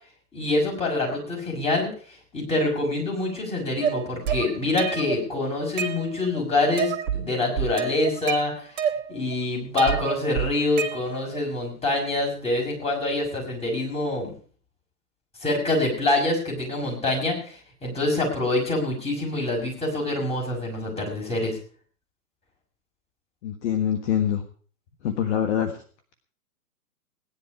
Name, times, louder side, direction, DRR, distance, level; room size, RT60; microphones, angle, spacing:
voice 1, 0.3-1.9 2.3-8.7 9.1-14.3 15.4-21.6, left 2 dB, 15° left, -1 dB, 5.9 m, -25 dB
sound 1, 3.8-5.2 5.6-6.4 6.8-7.2 7.6-9.3 9.8-11.4, right 8 dB, 40° right, 2.0 m, -28 dB
voice 2, 23.4-24.4 25.0-25.7, left 9 dB, 50° left, 7 dB, 1.6 m, -24 dB
17.5 x 10.5 x 4.9 m, 0.43 s
hypercardioid pair, 125°, 45 cm